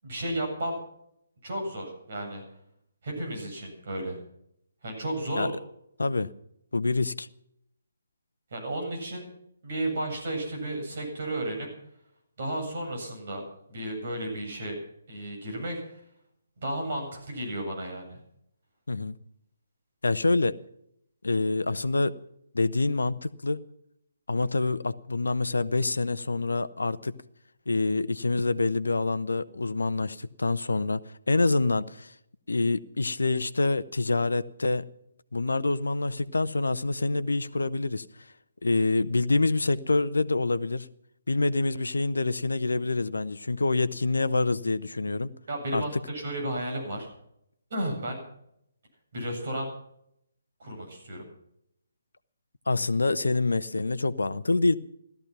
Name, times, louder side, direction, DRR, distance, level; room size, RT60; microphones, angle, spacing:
voice 1, 0.0-0.8 1.4-2.4 3.0-4.2 4.8-5.5 8.5-9.3 9.6-11.7 12.4-13.4 13.7-14.8 15.1-16.0 16.6-18.2 45.5-47.1 47.7-48.2 49.1-49.7 50.6-51.3, right 1 dB, 50° right, 7.9 m, -33 dB
voice 2, 6.0-6.3 6.7-7.3 18.9-19.2 20.0-20.6 21.2-22.1 22.5-23.6 24.3-27.1 27.7-31.0 31.3-32.1 32.5-34.9 35.3-38.0 38.6-40.9 41.3-45.3 45.7-45.8 52.7-54.8, left 3 dB, 70° left, 0.9 m, -26 dB
16.5 x 13.5 x 5.9 m
figure-of-eight pair, 140°, 0 cm